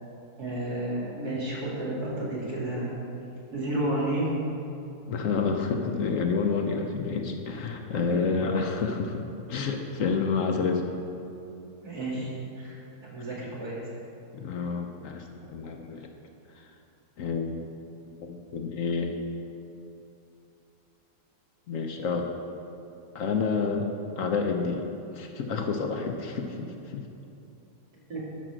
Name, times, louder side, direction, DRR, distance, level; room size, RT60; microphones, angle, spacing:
voice 1, 0.4-2.9 3.5-4.3 11.8-12.3 12.6-13.8 28.1-28.2, right 1 dB, 75° right, -7 dB, 3.0 m, -31 dB
voice 2, 5.1-9.2 9.5-10.9 14.3-16.1 16.6-16.7 17.2-17.6 18.2-19.2 21.7-22.3 23.1-23.9 24.2-27.1, left 5 dB, 65° left, 4 dB, 1.0 m, -29 dB
11.5 x 5.1 x 6.1 m, 2.8 s
omnidirectional pair, 1.7 m